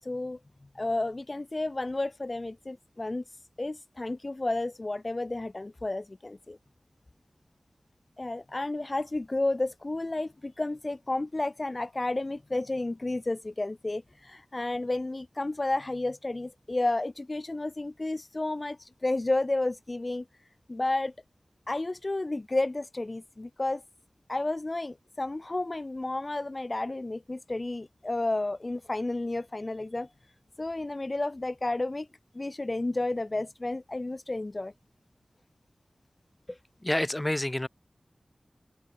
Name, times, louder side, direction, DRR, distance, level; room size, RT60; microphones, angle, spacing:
voice 1, 0.0-0.4 0.7-6.6 8.2-21.1 21.7-23.8 24.3-30.1 30.6-32.1 32.3-34.7, left 2 dB, 40° left, 1.2 m, -31 dB
voice 2, 36.5-37.7, left 1 dB, 20° left, 2.4 m, -29 dB
wide cardioid pair, 80°, 0 cm